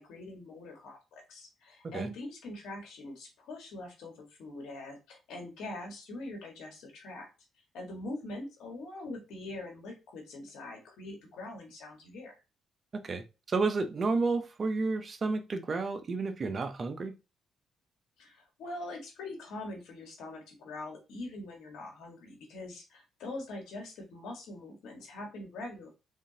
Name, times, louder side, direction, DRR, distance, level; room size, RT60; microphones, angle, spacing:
voice 1, 0.0-7.3 7.7-12.3 18.2-25.9, left 2 dB, 80° left, 2 dB, 1.5 m, -43 dB
voice 2, 12.9-17.1, right 3 dB, 40° right, 9 dB, 0.6 m, -31 dB
3.6 x 3.5 x 2.8 m, 0.28 s
cardioid pair, 90°, 0 cm